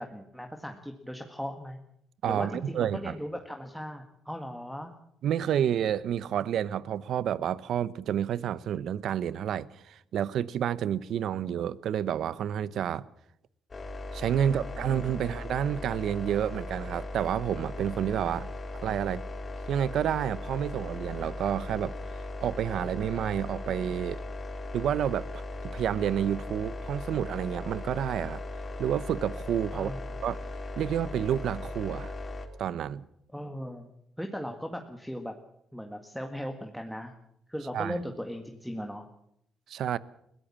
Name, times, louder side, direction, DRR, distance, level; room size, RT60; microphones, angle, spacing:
voice 1, 0.0-1.8 2.2-4.9 14.4-15.3 29.7-30.2 33.3-33.9 34.2-35.4 35.7-37.1 37.5-39.1, equal, ahead, 1.8 m, -38 dB
voice 2, 2.2-3.1 5.2-13.0 14.1-18.5 18.8-19.2 19.7-21.9 22.4-24.2 24.7-28.4 28.8-29.9 30.2-30.4 30.8-32.1 32.6-33.1 37.7-38.0 39.7-40.0, right 9 dB, 70° right, 0.8 m, -29 dB
sound 1, 13.7-32.5, left 2 dB, 35° left, 3.3 m, -38 dB
21.5 x 17.0 x 7.3 m
cardioid pair, 90°, 0 cm